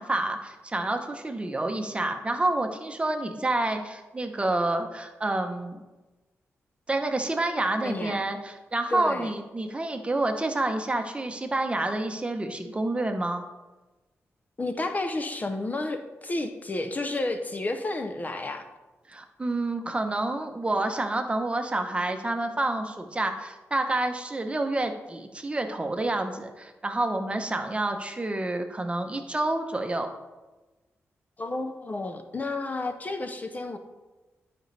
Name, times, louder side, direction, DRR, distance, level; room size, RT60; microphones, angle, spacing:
voice 1, 0.0-5.8 6.9-13.4 19.1-30.1, right 2 dB, 25° right, 6 dB, 0.9 m, -28 dB
voice 2, 7.8-8.2 8.9-9.3 14.6-18.7 31.4-33.8, left 2 dB, 30° left, 7 dB, 0.7 m, -31 dB
12.0 x 5.2 x 3.3 m, 1.1 s
cardioid pair, 80°, 5 cm